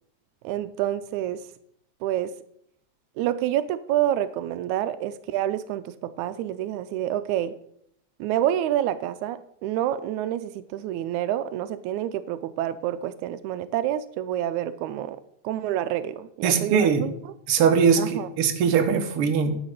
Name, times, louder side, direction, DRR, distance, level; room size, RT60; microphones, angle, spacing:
voice 1, 0.4-1.4 2.0-2.3 3.2-7.6 8.2-15.2 15.4-17.1 18.0-18.3, right 12 dB, 85° right, 13 dB, 1.9 m, -28 dB
voice 2, 16.4-17.0 17.5-19.5, right 6 dB, 60° right, 5 dB, 1.9 m, -21 dB
11.0 x 6.2 x 6.5 m, 0.73 s
omnidirectional pair, 3.3 m